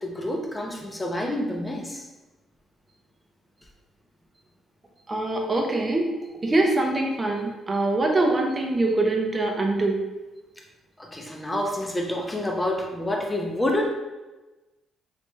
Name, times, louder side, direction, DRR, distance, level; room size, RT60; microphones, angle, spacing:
voice 1, 0.0-2.1 11.0-13.9, left 1 dB, 15° left, 0 dB, 0.7 m, -28 dB
voice 2, 5.1-10.0, right 2 dB, 25° right, 1 dB, 0.7 m, -24 dB
3.3 x 3.1 x 3.1 m, 1.1 s
cardioid pair, 90°, 0 cm